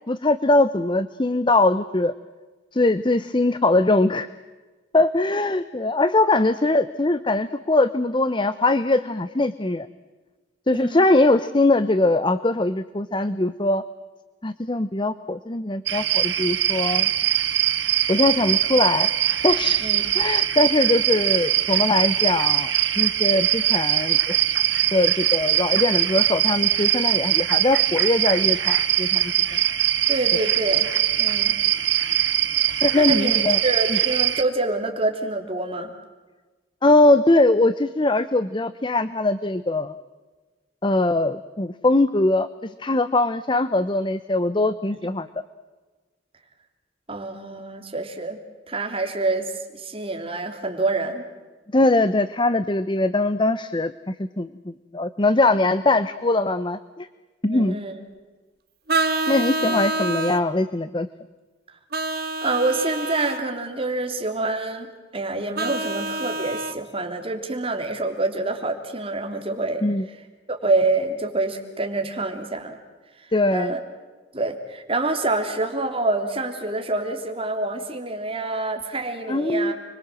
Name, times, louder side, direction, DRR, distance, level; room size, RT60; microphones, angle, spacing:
voice 1, 0.1-2.1 2.7-4.3 4.9-9.9 10.7-13.8 14.4-17.1 18.1-19.1 19.4-19.8 20.1-24.4 24.9-29.6 32.8-33.6 33.9-34.0 36.8-40.0 40.8-45.3 51.7-54.5 54.9-57.1 57.4-57.8 59.3-61.1 69.8-70.0 73.3-73.7 79.3-79.7, left 2 dB, 25° left, 13 dB, 0.8 m, -21 dB
voice 2, 10.7-11.1 19.8-20.1 30.1-30.9 31.2-31.6 32.9-35.9 47.1-48.4 48.7-51.2 57.4-57.9 59.6-59.8 62.4-69.8 70.5-72.8 73.5-73.8 74.3-79.7, right 2 dB, 30° right, 4 dB, 3.4 m, -26 dB
sound 1, 15.9-34.4, right 12 dB, 75° right, 1.6 m, -22 dB
Vehicle horn car horn honking, 58.9-60.4 61.9-63.4 65.6-66.8, right 2 dB, 55° right, 1.8 m, -26 dB
30.0 x 23.5 x 7.6 m, 1.3 s
head